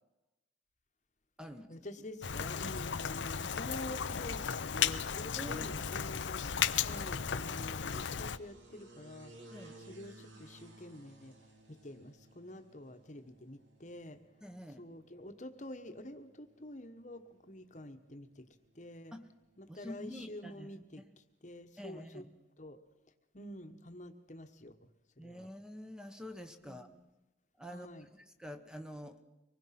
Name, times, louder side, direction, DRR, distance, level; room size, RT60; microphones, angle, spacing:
voice 1, 1.7-9.3 9.9-11.4 11.7-14.2 14.8-18.4 18.7-19.1 19.6-21.0 21.4-22.2 22.6-22.8 23.3-24.8 25.2-25.5 26.6-27.0 27.7-28.1, left 1 dB, 40° left, 8 dB, 1.3 m, -48 dB
Rain, 2.2-8.4, left 7 dB, 75° left, 0.7 m, -35 dB
sound 1, 4.7-20.6, right 2 dB, 80° right, 2.8 m, -61 dB
voice 2, 5.4-5.9 9.5-9.8 14.4-14.9 19.1-19.3 19.7-21.1 21.8-22.3 25.2-26.9 27.6-29.2, equal, 5° right, 7 dB, 1.1 m, -47 dB
24.5 x 20.0 x 5.9 m, 0.98 s
head